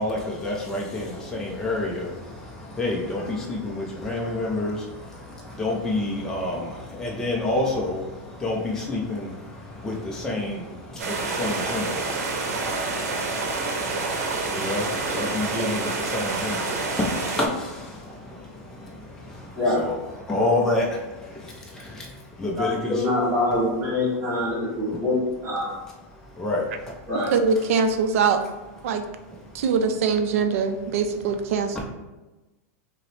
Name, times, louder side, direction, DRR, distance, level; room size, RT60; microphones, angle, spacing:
voice 1, 0.0-23.0 24.9-25.0 26.3-27.0 29.5-29.6, left 2 dB, 5° left, -3 dB, 0.4 m, -29 dB
sound 1, 11.0-17.5, right 3 dB, 85° right, 0.8 m, -28 dB
voice 2, 22.6-25.1 25.4-25.7 27.1-27.3, left 1 dB, 20° right, -5 dB, 1.4 m, -24 dB
voice 3, 27.3-28.4 28.8-29.0 29.5-31.8, right 5 dB, 65° right, 7 dB, 0.4 m, -22 dB
5.3 x 2.0 x 3.1 m, 1.1 s
supercardioid pair, 160°, 8 cm